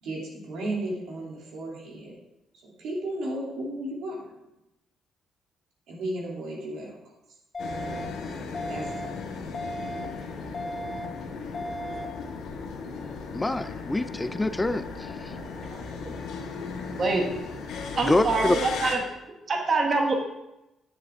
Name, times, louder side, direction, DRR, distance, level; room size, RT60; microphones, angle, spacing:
voice 1, 0.0-2.1 2.6-4.2 5.9-7.0 8.7-9.4, right 1 dB, 80° right, -3 dB, 2.9 m, -34 dB
sound 1, 7.5-8.0 8.5-9.0 9.5-10.0 10.5-11.0 11.5-12.0, equal, 35° left, 1.0 m, -35 dB
sound 2, 7.6-18.9, left 4 dB, 85° left, 1.5 m, -36 dB
voice 2, 13.3-15.3 18.0-18.6, left 2 dB, 15° left, 11 dB, 0.4 m, -26 dB
voice 3, 16.9-17.3 18.0-19.0 19.5-20.3, right 3 dB, 45° right, 2 dB, 1.4 m, -25 dB
9.2 x 7.7 x 3.6 m, 0.92 s
cardioid pair, 90°, 0 cm